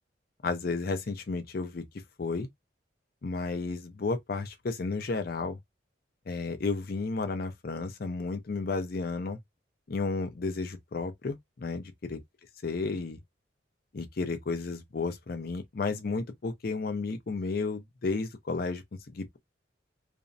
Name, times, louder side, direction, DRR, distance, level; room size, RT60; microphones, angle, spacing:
voice 1, 0.4-1.8 2.2-2.5 3.2-5.6 6.3-9.4 9.9-12.2 12.6-13.2 13.9-19.4, left 3 dB, 50° left, 0.5 m, -32 dB
2.5 x 2.0 x 2.5 m
head